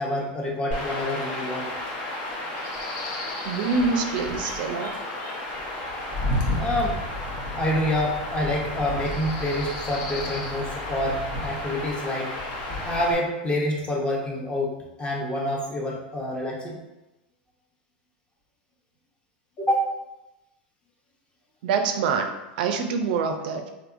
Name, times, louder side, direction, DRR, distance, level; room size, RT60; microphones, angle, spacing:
voice 1, 0.0-1.7 6.6-7.0 7.6-12.4 12.9-14.7 15.0-16.8 19.6-19.9, left 1 dB, 20° left, -2 dB, 0.8 m, -27 dB
Chirp tweet / Wind / Stream, 0.7-13.1, left 1 dB, 55° left, 0.9 m, -31 dB
voice 2, 3.4-4.9 21.6-23.7, right 5 dB, 70° right, 5 dB, 0.4 m, -26 dB
3.4 x 2.8 x 2.5 m, 1.0 s
hypercardioid pair, 115°, 5 cm